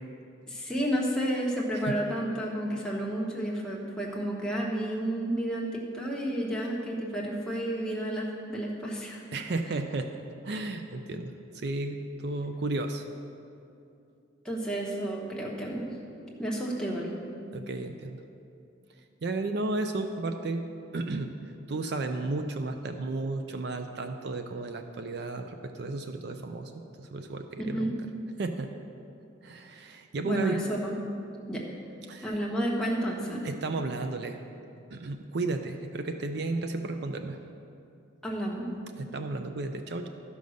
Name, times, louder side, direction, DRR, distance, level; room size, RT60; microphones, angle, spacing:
voice 1, 0.5-9.2 14.4-15.9 16.4-17.1 27.7-27.9 30.2-31.0 31.5-31.6 32.2-33.4 38.2-38.7, right 1 dB, 5° left, -3 dB, 1.2 m, -31 dB
voice 2, 9.3-10.2 10.4-13.1 16.1-16.3 17.5-18.2 19.0-20.6 20.9-21.3 21.7-27.9 28.4-28.7 29.4-30.6 32.1-32.4 33.4-34.4 34.9-37.4 39.0-40.1, right 2 dB, 55° right, 6 dB, 0.5 m, -33 dB
12.5 x 5.3 x 6.4 m, 2.6 s
head